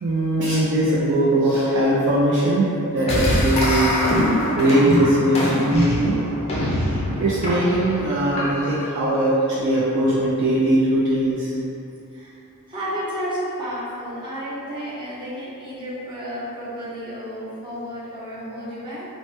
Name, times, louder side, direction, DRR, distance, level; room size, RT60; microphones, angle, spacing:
voice 1, 0.0-4.0 4.6-6.2 7.1-11.5, right 1 dB, 50° right, -7 dB, 0.4 m, -20 dB
sound 1, 3.1-8.9, left 1 dB, 30° left, 0.4 m, -23 dB
voice 2, 12.7-19.1, equal, 20° right, -11 dB, 0.8 m, -31 dB
3.2 x 2.1 x 3.0 m, 2.6 s
head